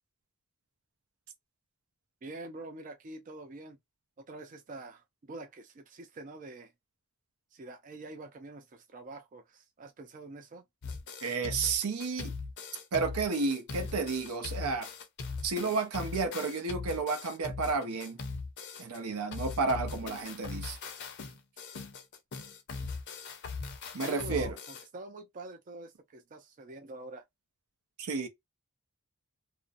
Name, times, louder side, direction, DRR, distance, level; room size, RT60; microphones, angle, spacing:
voice 1, 2.2-3.8 4.2-6.7 7.5-10.6 24.0-27.2, right 2 dB, 35° right, 0.4 m, -46 dB
sound 1, 10.8-19.0 19.3-24.8, left 4 dB, 50° left, 0.6 m, -40 dB
voice 2, 11.2-12.3 12.9-14.9 15.4-18.2 18.8-20.8 23.9-24.6 28.0-28.3, right 4 dB, 80° right, 0.6 m, -31 dB
2.5 x 2.0 x 2.5 m
head